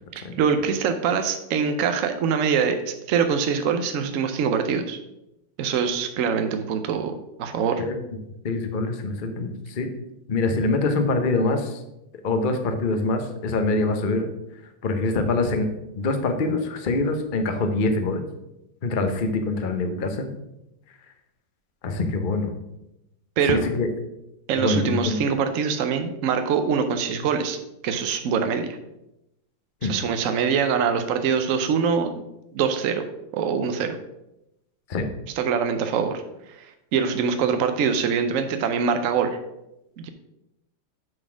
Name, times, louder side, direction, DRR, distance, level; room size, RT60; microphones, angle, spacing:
voice 1, 0.2-5.0 5.6-7.1 7.4-7.8 23.4-23.6 24.5-27.6 27.8-28.8 29.8-32.1 32.5-33.0 33.3-34.0 35.4-36.2 36.5-39.4 40.0-40.1, right 6 dB, 70° right, 7 dB, 0.7 m, -24 dB
voice 2, 8.4-9.9 10.3-11.8 12.2-14.3 14.8-15.7 16.0-18.2 18.8-20.3 21.8-22.5 23.5-23.9 24.6-25.2 29.8-30.0 34.9-35.1, left 3 dB, 50° left, 6 dB, 0.6 m, -24 dB
7.6 x 4.1 x 6.0 m, 0.88 s
omnidirectional pair, 2.0 m